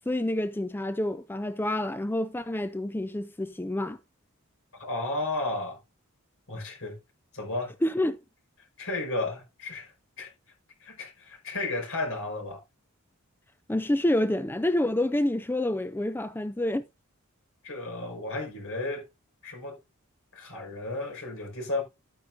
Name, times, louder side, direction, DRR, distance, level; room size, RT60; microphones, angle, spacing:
voice 1, 0.1-4.0 7.8-8.2 13.7-16.8, left 1 dB, 10° left, 0.5 m, -28 dB
voice 2, 4.8-5.8 6.5-7.0 7.3-7.7 8.8-10.3 10.8-12.6 17.6-19.0 19.4-19.8 20.3-21.8, left 2 dB, 65° left, 5.4 m, -33 dB
12.5 x 9.3 x 2.7 m
head